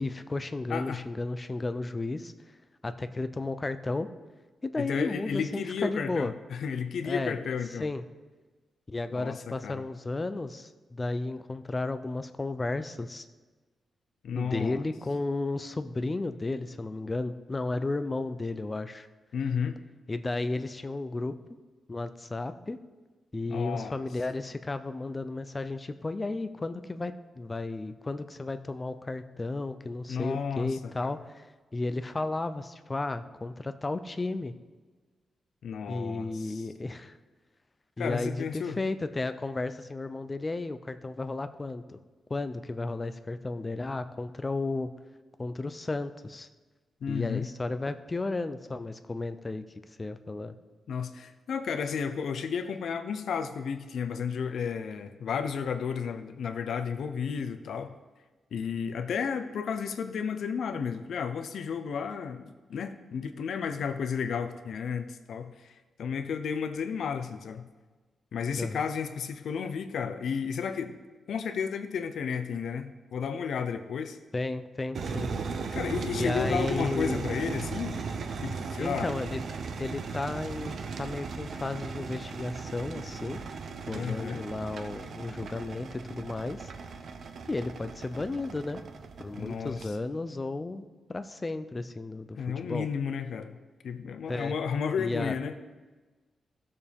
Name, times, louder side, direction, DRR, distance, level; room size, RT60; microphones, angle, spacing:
voice 1, 0.0-2.3 2.8-4.1 4.6-6.3 7.0-7.4 7.8-8.0 8.9-13.3 14.3-19.1 20.1-21.3 21.9-22.8 23.3-31.5 31.7-34.5 35.9-37.2 38.0-42.0 42.3-44.9 45.4-46.5 47.1-50.5 68.6-68.8 74.3-75.3 76.1-77.3 78.8-79.4 79.8-83.4 83.9-86.7 87.5-88.8 89.2-92.9 94.3-94.6 95.0-95.4, left 2 dB, 20° left, 10 dB, 0.5 m, -33 dB
voice 2, 0.7-1.0 4.8-7.9 9.1-9.8 14.2-14.8 19.3-19.8 23.5-23.9 30.1-31.1 35.6-36.6 38.0-38.8 47.0-47.4 50.9-57.9 58.5-65.7 66.0-67.6 68.3-71.0 71.3-74.2 75.7-78.0 78.4-79.1 83.9-84.4 89.4-89.8 92.4-93.6 93.8-95.5, left 6 dB, 75° left, 9 dB, 0.8 m, -32 dB
sound 1, 74.9-89.9, right 5 dB, 60° right, 0.7 m, -37 dB
16.0 x 6.8 x 3.6 m, 1.3 s
wide cardioid pair, 130°, 0 cm